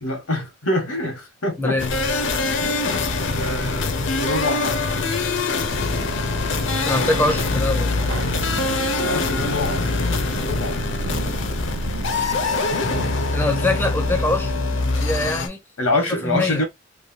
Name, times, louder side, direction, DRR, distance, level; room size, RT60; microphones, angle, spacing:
voice 1, 0.0-1.8 2.6-4.9 9.0-9.9 10.2-11.0 15.8-16.6, left 2 dB, 90° left, 1.4 m, -26 dB
voice 2, 1.6-1.9 6.8-7.9 13.3-14.5 14.9-15.6 15.9-16.6, left 2 dB, 10° left, 0.5 m, -23 dB
sound 1, 1.8-15.5, left 3 dB, 60° left, 0.6 m, -23 dB
sound 2, 5.9-15.0, right 4 dB, 85° right, 0.5 m, -35 dB
3.1 x 2.6 x 2.7 m
head